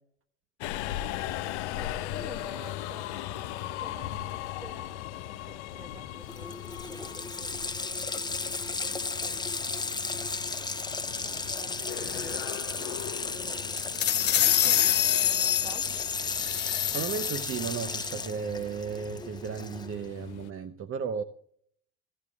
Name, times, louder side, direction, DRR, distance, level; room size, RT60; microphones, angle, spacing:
Subway metro underground, 0.6-20.5, left 13 dB, 70° left, 0.6 m, -39 dB
voice 1, 1.7-9.7 10.6-10.7 11.1-13.8 14.6-15.8, right 1 dB, 10° right, 1.6 m, -50 dB
Water tap faucet, 6.0-6.1 6.3-20.0, left 3 dB, 10° left, 0.9 m, -35 dB
sound 1, 13.7-17.7, left 11 dB, 30° left, 0.5 m, -26 dB
voice 2, 16.9-21.2, right 6 dB, 40° right, 0.9 m, -34 dB
16.0 x 13.5 x 2.4 m
hypercardioid pair, 70°, 35 cm